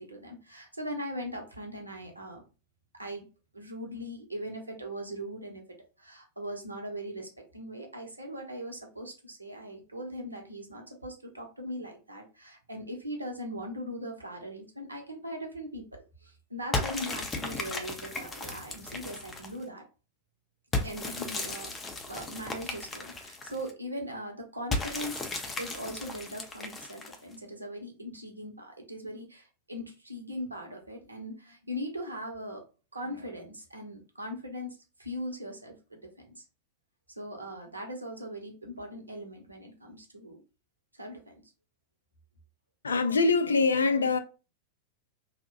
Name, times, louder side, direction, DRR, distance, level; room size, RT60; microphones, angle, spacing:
voice 1, 0.0-2.4 3.0-3.3 3.5-15.8 16.2-19.8 20.8-21.7 22.1-25.3 25.6-32.6 32.9-36.4 37.2-40.4 40.9-41.3, equal, 80° right, 0.7 m, -40 dB
sound 1, 16.7-19.6 20.7-23.7 24.7-27.4, left 2 dB, 15° left, 0.5 m, -35 dB
voice 2, 42.8-44.2, left 4 dB, 75° left, 0.3 m, -24 dB
2.7 x 2.1 x 2.7 m
figure-of-eight pair, 90°, 0 cm